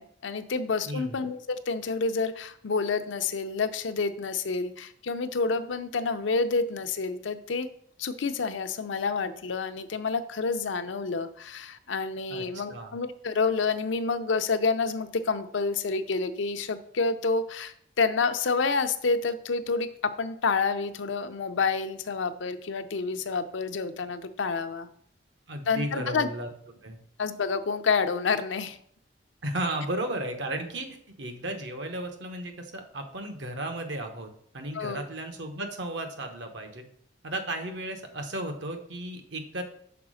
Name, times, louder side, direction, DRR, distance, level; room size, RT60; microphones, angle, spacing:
voice 1, 0.0-7.7 8.0-24.9 25.7-26.3 27.2-28.8 34.7-35.0, left 4 dB, 85° left, 9 dB, 0.6 m, -28 dB
voice 2, 0.9-1.2 12.3-12.4 12.7-13.0 25.5-26.5 26.8-27.0 29.4-30.9 31.2-36.8 37.2-39.6, right 1 dB, 75° right, 5 dB, 1.1 m, -34 dB
6.0 x 4.1 x 6.3 m, 0.65 s
head